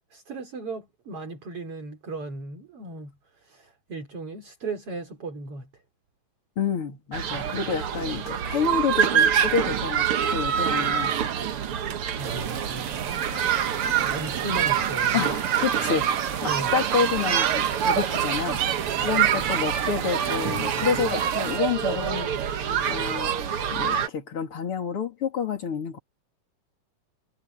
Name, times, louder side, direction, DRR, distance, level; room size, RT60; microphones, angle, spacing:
voice 1, 0.1-5.7 12.1-13.0 13.7-15.3 16.4-16.7, right 3 dB, 40° right, 4.6 m, -36 dB
voice 2, 6.6-11.1 13.3-13.6 13.9-14.0 15.1-18.6 19.0-22.3 22.9-23.3 23.7-26.0, left 6 dB, 40° left, 3.3 m, -29 dB
sound 1, 7.1-24.1, right 9 dB, 55° right, 1.6 m, -25 dB
sound 2, 12.2-21.6, right 8 dB, 80° right, 4.3 m, -36 dB
omnidirectional pair, 4.0 m